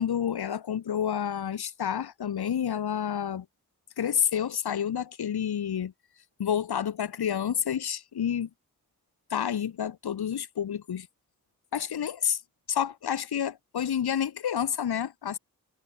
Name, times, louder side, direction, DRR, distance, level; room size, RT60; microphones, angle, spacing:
voice 1, 0.0-3.4 4.0-5.9 6.4-8.5 9.3-11.1 11.7-12.4 12.7-15.4, left 9 dB, 85° left, 3.3 m, -29 dB
cardioid pair, 40°, 37 cm